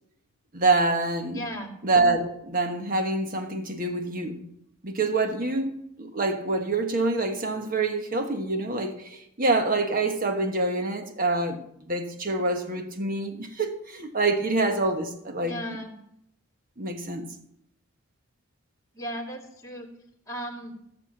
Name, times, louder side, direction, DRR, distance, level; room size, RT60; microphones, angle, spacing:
voice 1, 0.5-1.4 1.8-4.4 4.8-5.7 6.0-11.6 11.9-15.6 16.8-17.3, right 3 dB, 40° right, 1.4 m, -26 dB
voice 2, 1.3-1.8 15.4-15.9 18.9-19.9 20.3-20.8, equal, 15° left, 2.3 m, -36 dB
16.0 x 6.7 x 7.2 m
head